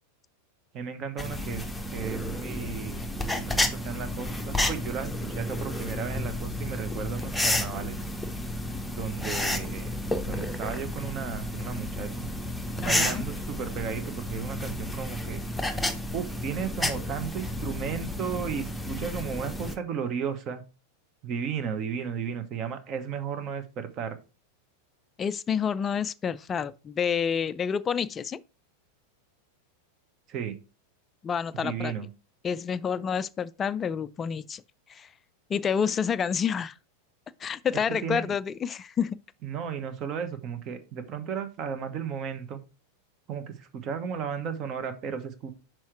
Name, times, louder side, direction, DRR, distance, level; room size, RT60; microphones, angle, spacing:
voice 1, 0.7-1.6 1.9-3.0 3.3-8.0 8.9-9.9 10.3-12.3 12.8-15.4 16.1-20.6 21.2-24.2 30.3-30.6 31.6-32.1 38.0-38.3 39.4-42.6 43.3-45.5, right 7 dB, 35° right, 1.1 m, -34 dB
sound 1, 1.2-19.8, left 1 dB, 5° left, 0.9 m, -31 dB
voice 2, 12.8-13.2 25.2-28.4 31.2-31.9 32.4-34.6 34.9-35.1 35.5-36.7 37.4-39.2, left 7 dB, 20° left, 0.3 m, -29 dB
6.2 x 4.5 x 4.6 m
figure-of-eight pair, 90°, 0 cm